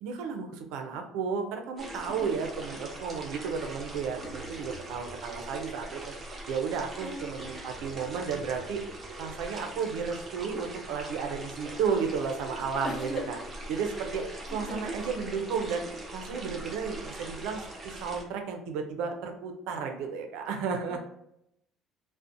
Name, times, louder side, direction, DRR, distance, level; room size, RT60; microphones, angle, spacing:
voice 1, 0.0-6.1 6.5-8.8 9.2-13.4 13.7-14.2 14.5-15.8 16.1-21.0, right 6 dB, 85° right, 4 dB, 0.4 m, -33 dB
sound 1, 1.8-18.2, right 1 dB, 25° right, 0.5 m, -41 dB
voice 2, 7.0-7.6 12.8-13.2 14.1-15.2 20.9-21.0, left 1 dB, 25° left, 1 dB, 0.6 m, -39 dB
2.4 x 2.0 x 2.6 m, 0.79 s
cardioid pair, 125°, 0 cm